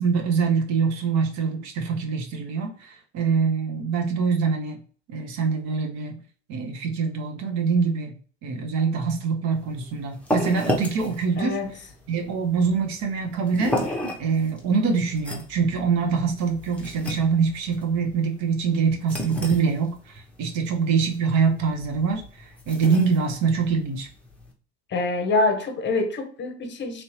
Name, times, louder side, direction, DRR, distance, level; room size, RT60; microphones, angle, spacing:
voice 1, 0.0-4.8 5.1-6.2 6.5-8.1 8.4-11.6 12.1-13.8 14.2-22.2 22.7-24.1, right 5 dB, 50° right, 0.8 m, -24 dB
sound 1, 9.5-24.5, left 1 dB, 5° left, 0.7 m, -34 dB
voice 2, 11.4-11.7 24.9-27.0, left 3 dB, 30° left, 0.8 m, -25 dB
3.0 x 2.7 x 3.0 m
hypercardioid pair, 75°, 35 cm